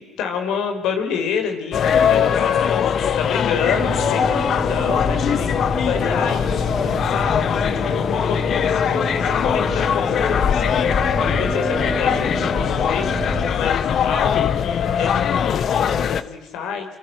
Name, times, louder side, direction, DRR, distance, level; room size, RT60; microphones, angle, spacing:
voice 1, 0.0-7.8 8.2-10.9 11.4-13.1 13.4-16.9, left 7 dB, 85° left, 6 dB, 5.2 m, -28 dB
sound 1, 1.7-16.2, left 8 dB, 60° left, 1.3 m, -21 dB
sound 2, 3.7-13.5, right 3 dB, 30° right, 3.2 m, -30 dB
29.0 x 27.5 x 6.5 m, 1.1 s
cardioid pair, 80°, 0 cm